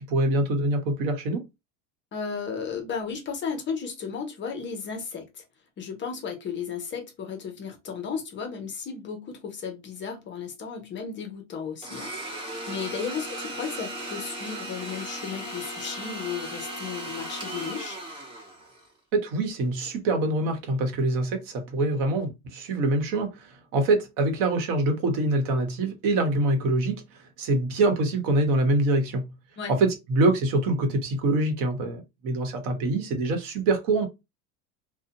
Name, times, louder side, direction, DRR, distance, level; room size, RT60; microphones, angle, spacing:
voice 1, 0.0-1.5 19.1-29.3 29.7-34.1, right 2 dB, 55° right, 1.0 m, -25 dB
voice 2, 2.1-5.4 5.8-18.0 29.6-29.8, left 6 dB, 30° left, 0.6 m, -34 dB
Domestic sounds home sounds, 11.8-18.9, right 1 dB, 10° right, 1.1 m, -37 dB
2.7 x 2.1 x 2.7 m
supercardioid pair, 125°, 40 cm